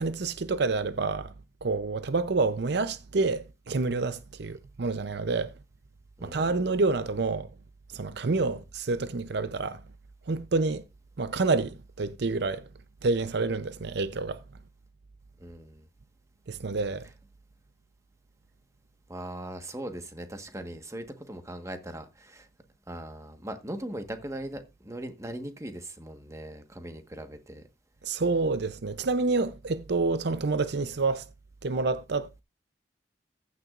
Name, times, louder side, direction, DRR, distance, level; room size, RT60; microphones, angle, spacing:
voice 1, 0.0-1.3 1.6-5.5 6.2-7.5 7.9-9.8 10.3-10.8 11.2-12.7 13.0-14.4 16.5-17.1 28.0-31.3 31.6-32.4, right 3 dB, 65° right, 0.6 m, -28 dB
voice 2, 6.2-6.5 8.2-8.4 15.4-15.9 19.1-22.5 22.9-27.6, right 1 dB, 15° right, 1.4 m, -39 dB
14.5 x 9.5 x 2.5 m
head